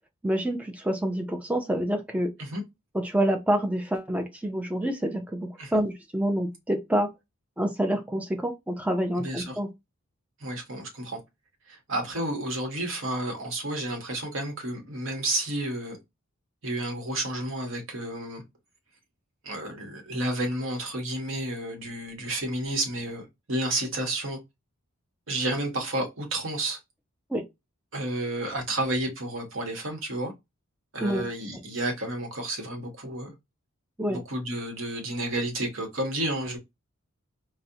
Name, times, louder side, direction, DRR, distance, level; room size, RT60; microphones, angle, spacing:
voice 1, 0.2-2.3 2.9-7.1 7.6-9.7 27.3-27.4 31.0-31.3 34.0-34.2, right 1 dB, 5° right, 0.4 m, -27 dB
voice 2, 9.2-9.6 10.4-11.2 11.7-16.0 16.6-18.4 19.4-24.4 25.3-26.8 27.9-30.3 30.9-33.3 34.1-36.6, right 1 dB, 60° right, 1.0 m, -31 dB
4.0 x 2.1 x 2.7 m
head